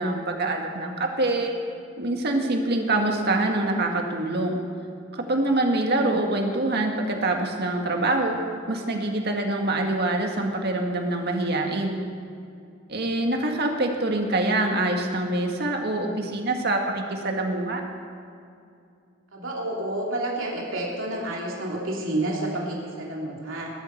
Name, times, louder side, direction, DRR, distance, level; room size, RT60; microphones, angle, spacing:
voice 1, 0.0-1.5 2.0-4.6 5.1-8.4 8.7-12.0 12.9-17.8, right 2 dB, 55° right, 2 dB, 1.9 m, -25 dB
voice 2, 19.3-23.7, right 1 dB, 80° right, -3 dB, 2.8 m, -29 dB
20.5 x 12.5 x 4.5 m, 2.5 s
head